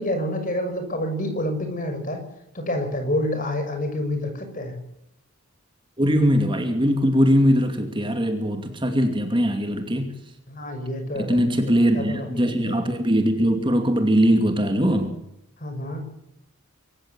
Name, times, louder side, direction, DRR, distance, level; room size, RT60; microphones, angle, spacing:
voice 1, 0.0-2.2 2.5-4.8 10.5-12.8 15.6-16.0, left 1 dB, 40° left, 6 dB, 6.2 m, -28 dB
voice 2, 6.0-10.1 11.2-15.2, equal, 25° right, 6 dB, 2.5 m, -21 dB
25.0 x 15.0 x 8.3 m, 0.80 s
head